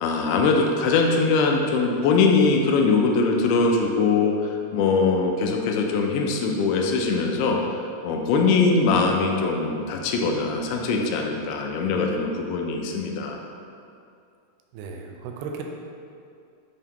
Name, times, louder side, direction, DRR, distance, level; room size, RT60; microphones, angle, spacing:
voice 1, 0.0-13.4, left 4 dB, 85° left, 1 dB, 2.6 m, -22 dB
voice 2, 14.7-15.6, right 5 dB, 85° right, 2 dB, 2.4 m, -35 dB
6.8 x 2.8 x 5.2 m, 2.5 s
omnidirectional pair, 4.6 m